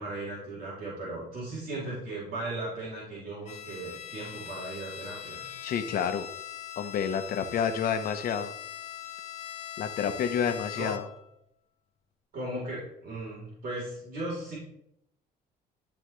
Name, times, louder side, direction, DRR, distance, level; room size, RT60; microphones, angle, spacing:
voice 1, 0.0-5.5 10.8-10.9 12.3-14.6, right 2 dB, 60° right, -6 dB, 3.6 m, -37 dB
Bowed string instrument, 3.5-11.3, left 10 dB, 40° left, 0.8 m, -41 dB
voice 2, 5.6-6.3 6.8-8.5 9.8-11.1, left 7 dB, 60° left, 8 dB, 1.0 m, -29 dB
12.5 x 4.8 x 3.2 m, 0.76 s
cardioid pair, 110°, 17 cm